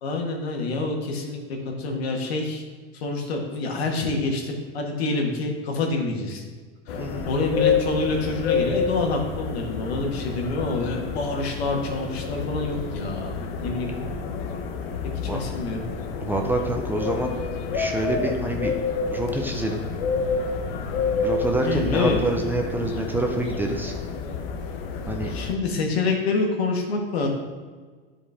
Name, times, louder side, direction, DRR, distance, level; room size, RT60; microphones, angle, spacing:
voice 1, 0.0-1.4 1.8-2.6 2.9-6.4 6.9-7.0 7.2-13.3 13.6-13.9 15.0-15.8 21.6-22.2 25.3-27.3, left 3 dB, 85° left, 1 dB, 1.8 m, -27 dB
sound 1, 6.9-25.5, left 5 dB, 65° left, 1.0 m, -29 dB
voice 2, 7.0-7.3 15.3-15.4 16.2-17.3 17.7-18.7 19.1-19.8 21.2-23.9 25.1-25.3, right 1 dB, 5° right, 2 dB, 0.5 m, -26 dB
10.5 x 4.9 x 3.6 m, 1.5 s
supercardioid pair, 140°, 30 cm